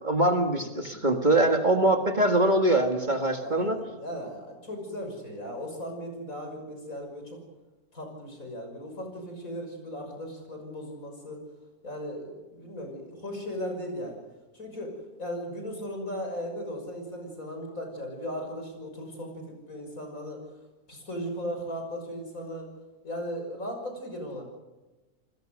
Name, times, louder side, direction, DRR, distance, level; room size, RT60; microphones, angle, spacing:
voice 1, 0.0-3.8, right 1 dB, 30° right, 4 dB, 2.0 m, -23 dB
voice 2, 0.6-1.2 3.4-7.4 7.9-11.4 11.8-14.2 14.5-20.4 20.9-22.7 23.0-24.4, equal, 60° left, 3 dB, 6.6 m, -37 dB
29.5 x 20.5 x 6.7 m, 1.1 s
omnidirectional pair, 1.6 m